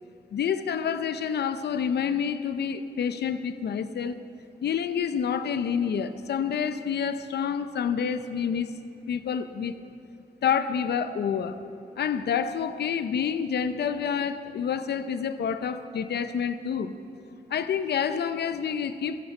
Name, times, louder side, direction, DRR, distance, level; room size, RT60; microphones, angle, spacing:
voice 1, 0.3-4.2 4.6-8.7 9.1-9.8 10.4-11.6 12.0-17.0 17.5-19.2, left 7 dB, 90° left, 11 dB, 0.6 m, -28 dB
16.0 x 13.5 x 5.5 m, 2.9 s
cardioid pair, 80°, 17 cm